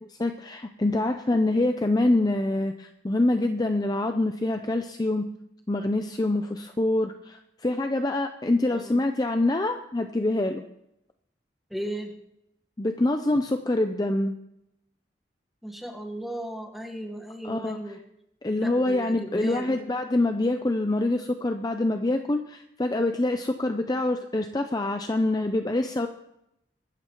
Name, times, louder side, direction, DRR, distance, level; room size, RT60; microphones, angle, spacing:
voice 1, 0.2-5.3 5.7-10.6 12.8-14.4 17.4-17.8 18.4-26.1, left 2 dB, 20° left, 6 dB, 0.5 m, -25 dB
voice 2, 8.7-9.0 11.7-12.2 15.6-18.0 18.6-19.8, right 1 dB, ahead, 2 dB, 1.3 m, -36 dB
23.5 x 12.5 x 3.0 m, 0.82 s
head